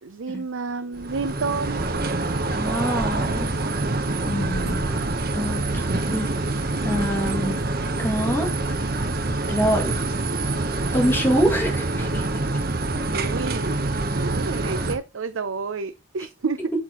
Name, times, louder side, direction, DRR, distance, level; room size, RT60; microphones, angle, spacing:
voice 1, 0.0-1.8 13.1-13.7 14.2-16.7, right 4 dB, 85° right, 0.6 m, -30 dB
sound 1, 0.9-15.0, right 2 dB, 50° right, 1.0 m, -26 dB
voice 2, 2.5-3.6 4.2-4.9 5.3-6.3 6.8-7.6 8.0-8.5 9.5-10.0 10.9-12.3, equal, 10° left, 2.1 m, -25 dB
8.5 x 6.6 x 3.0 m
head